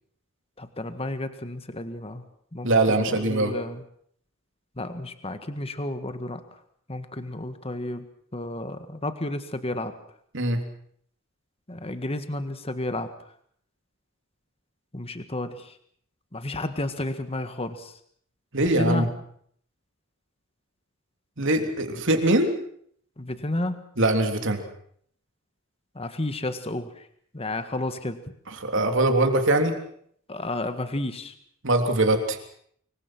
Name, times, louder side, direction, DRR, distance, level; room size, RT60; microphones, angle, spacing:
voice 1, 0.6-2.2 2.5-3.8 4.8-6.4 6.9-8.1 8.3-9.9 11.7-13.1 14.9-15.7 16.3-17.9 18.6-19.1 23.2-23.8 25.9-27.0 27.3-28.2 30.3-31.3, left 1 dB, 30° left, 9 dB, 1.7 m, -31 dB
voice 2, 2.6-3.6 10.3-10.6 18.5-19.1 21.4-22.5 24.0-24.6 28.6-29.7 31.6-32.4, right 2 dB, 60° right, 5 dB, 3.5 m, -22 dB
25.5 x 23.5 x 6.1 m, 0.63 s
head